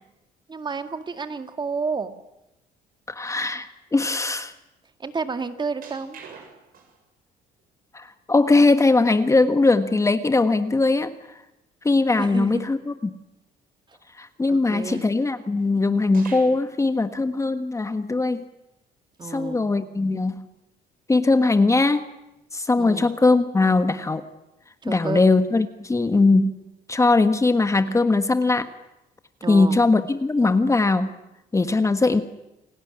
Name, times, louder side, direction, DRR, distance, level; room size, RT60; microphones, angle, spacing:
voice 1, 0.5-2.1 5.0-6.2 12.2-12.6 13.9-14.0 14.5-15.1 19.2-19.6 22.8-23.1 24.8-25.3 29.4-29.8, right 4 dB, 25° right, 8 dB, 2.2 m, -30 dB
voice 2, 3.1-4.5 7.9-11.1 11.8-12.9 14.2-18.4 19.3-20.4 21.1-22.0 22.5-24.2 24.8-26.5 26.9-28.7 29.5-31.1 31.5-32.2, left 3 dB, 15° left, 9 dB, 1.4 m, -20 dB
sound 1, 5.8-7.1 7.6-7.7 9.9-10.0 10.3-10.4 10.8-10.9 14.8-15.7 16.1-16.7 17.2-17.4 17.8-17.9 19.2-19.3 19.7-20.0 22.2-22.4, right 5 dB, 60° right, 7.4 m, -46 dB
29.0 x 18.5 x 10.0 m, 0.92 s
cardioid pair, 110°, 17 cm